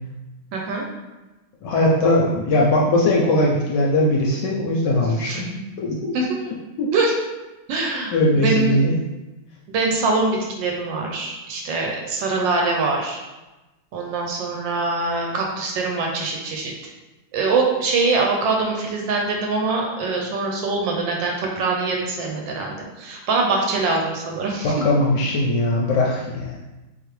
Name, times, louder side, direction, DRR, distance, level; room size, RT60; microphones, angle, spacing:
voice 1, 0.5-0.9 5.2-5.4 6.1-6.3 6.9-7.1 7.7-8.8 9.7-13.2 13.9-16.7 17.3-24.7, right 3 dB, 75° right, 0 dB, 1.2 m, -23 dB
voice 2, 1.6-5.5 5.8-6.1 6.8-6.9 8.1-9.0 24.6-26.5, left 1 dB, 75° left, -3 dB, 1.0 m, -20 dB
3.9 x 2.9 x 3.0 m, 1.1 s
omnidirectional pair, 2.2 m